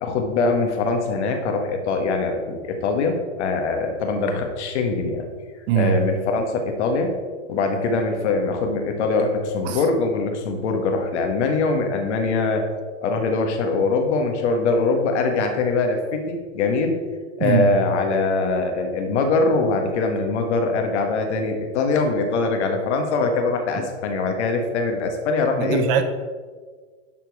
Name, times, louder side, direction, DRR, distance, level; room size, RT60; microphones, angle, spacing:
voice 1, 0.0-5.3 5.8-7.1 7.5-12.7 13.0-17.0 17.4-25.8, left 3 dB, 70° left, 4 dB, 1.7 m, -22 dB
voice 2, 5.7-6.0 9.6-9.8 17.4-17.7 23.7-23.8 25.6-26.0, right 8 dB, 50° right, 8 dB, 1.0 m, -21 dB
11.5 x 4.4 x 4.8 m, 1.5 s
hypercardioid pair, 120°, 35 cm